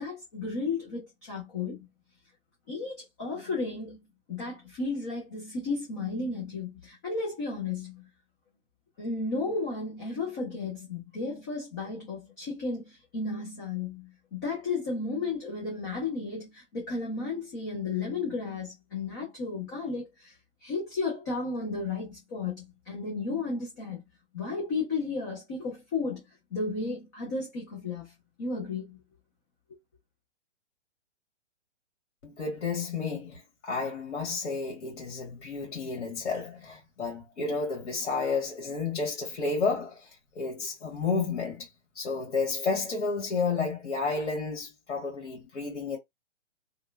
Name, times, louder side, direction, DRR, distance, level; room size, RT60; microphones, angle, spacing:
voice 1, 0.0-1.9 2.7-4.0 4.3-8.1 9.0-20.3 20.6-24.0 24.3-26.2 26.5-28.1 28.4-29.0, left 3 dB, 15° left, 0.4 m, -33 dB
voice 2, 32.2-41.7 41.9-46.0, left 4 dB, 70° left, 1.5 m, -31 dB
2.9 x 2.1 x 2.2 m
hypercardioid pair, 140°, 35 cm